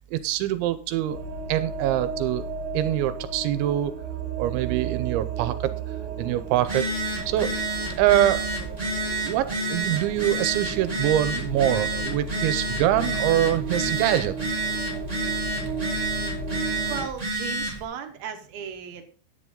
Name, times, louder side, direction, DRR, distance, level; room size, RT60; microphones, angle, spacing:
voice 1, 0.1-1.2 1.5-2.5 2.7-3.9 4.4-5.7 6.2-6.9 7.3-7.5 8.0-8.7 9.2-14.3, right 13 dB, 85° right, 13 dB, 3.0 m, -24 dB
sound 1, 1.1-17.0, right 4 dB, 40° right, 3.6 m, -33 dB
Telephone, 6.5-17.8, right 2 dB, 10° right, 2.2 m, -30 dB
voice 2, 16.9-19.0, right 7 dB, 70° right, 6 dB, 2.6 m, -36 dB
10.5 x 9.9 x 3.7 m, 0.39 s
omnidirectional pair, 5.2 m